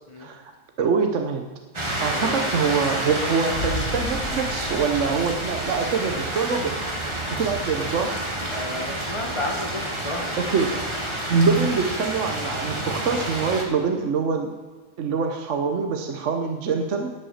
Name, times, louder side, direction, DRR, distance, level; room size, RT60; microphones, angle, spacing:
voice 1, 0.8-1.4 2.0-6.8 7.3-8.1 10.4-10.7 11.3-14.5 15.0-17.1, right 5 dB, 60° right, 4 dB, 1.2 m, -24 dB
sound 1, 1.7-13.6, right 1 dB, 20° right, 1.4 m, -29 dB
voice 2, 2.1-2.5 8.5-10.4 10.7-10.8, left 1 dB, 20° left, 0 dB, 1.7 m, -32 dB
Boom, 3.5-6.5, left 3 dB, 55° left, 2.0 m, -34 dB
11.5 x 5.9 x 7.2 m, 1.3 s
omnidirectional pair, 1.5 m